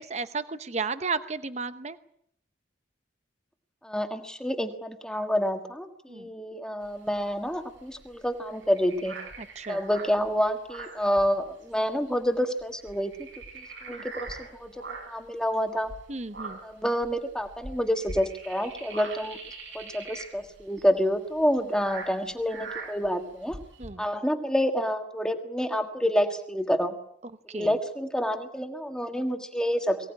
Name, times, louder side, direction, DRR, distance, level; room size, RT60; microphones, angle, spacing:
voice 1, 0.0-2.0 6.1-6.3 9.4-9.8 13.9-14.0 16.1-16.6 23.8-24.0 27.5-27.8, right 4 dB, 35° right, 12 dB, 0.9 m, -33 dB
voice 2, 3.8-9.1 9.7-13.1 13.9-14.3 14.6-14.7 15.1-15.9 16.6-19.4 19.7-23.6 24.0-26.9 27.5-30.0, equal, 5° left, 5 dB, 1.6 m, -28 dB
sound 1, 6.8-11.8 12.1-12.3 12.6-15.3 15.8-23.9, right 3 dB, 75° right, 5.9 m, -42 dB
23.0 x 17.5 x 9.9 m, 0.71 s
head